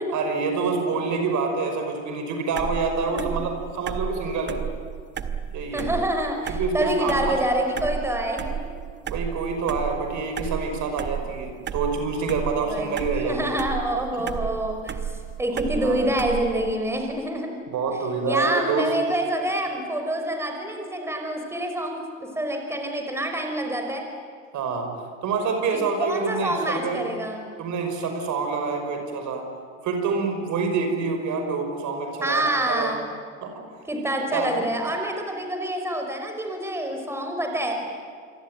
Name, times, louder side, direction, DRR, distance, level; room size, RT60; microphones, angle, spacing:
voice 1, 0.1-4.7 5.5-5.9 6.6-7.4 9.1-13.5 15.6-16.0 17.7-18.9 24.5-27.0 27.6-29.5 29.8-33.0 33.4-33.7 34.3-34.6, right 4 dB, 45° right, 5 dB, 5.7 m, -27 dB
sound 1, 2.5-16.7, right 8 dB, 25° right, 1.9 m, -33 dB
voice 2, 3.1-3.4 5.7-8.6 12.7-17.5 18.3-24.0 25.7-27.5 32.2-33.1 33.9-37.9, right 1 dB, 5° right, 3 dB, 5.4 m, -27 dB
28.0 x 22.5 x 9.2 m, 2.1 s
hypercardioid pair, 90°, 40 cm